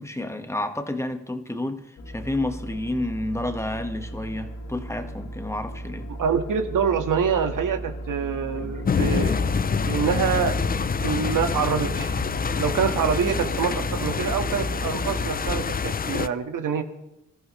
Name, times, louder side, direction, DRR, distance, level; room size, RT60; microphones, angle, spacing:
voice 1, 0.0-6.1 8.6-8.8 13.3-13.5, left 1 dB, 10° left, 1.6 m, -30 dB
sound 1, 2.0-15.6, right 1 dB, 55° left, 2.6 m, -34 dB
voice 2, 6.2-9.5 9.9-10.6 11.0-12.1 12.6-16.8, right 7 dB, 65° right, 1.8 m, -25 dB
sound 2, 8.8-16.3, left 6 dB, 25° left, 0.5 m, -26 dB
25.5 x 13.5 x 3.2 m
cardioid pair, 75°, 34 cm